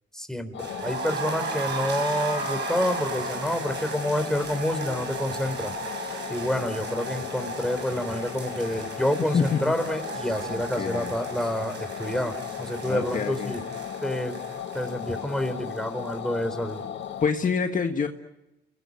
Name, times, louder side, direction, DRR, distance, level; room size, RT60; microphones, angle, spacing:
voice 1, 0.1-5.7 6.3-13.6 14.0-14.4 14.7-16.8, left 1 dB, 5° left, 9 dB, 3.9 m, -28 dB
sound 1, 0.5-17.3, left 8 dB, 70° left, 1.8 m, -36 dB
sound 2, 0.6-16.4 16.7-16.8 17.1-17.2, right 5 dB, 60° right, 7.2 m, -36 dB
voice 2, 9.2-9.7 10.5-11.1 12.9-13.5 17.2-18.1, left 6 dB, 40° left, 5 dB, 1.6 m, -26 dB
29.5 x 20.0 x 9.5 m, 0.93 s
cardioid pair, 90°, 20 cm